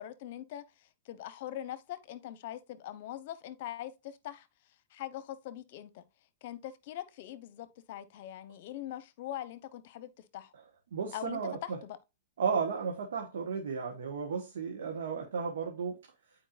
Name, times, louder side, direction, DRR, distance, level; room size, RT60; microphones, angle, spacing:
voice 1, 0.0-4.5 4.9-6.0 6.4-10.5 11.1-12.0, left 12 dB, 60° left, 0.8 m, -42 dB
voice 2, 10.9-11.8 12.4-16.0, right 5 dB, 80° right, 1.3 m, -34 dB
9.0 x 4.6 x 2.5 m
hypercardioid pair, 120°, 0 cm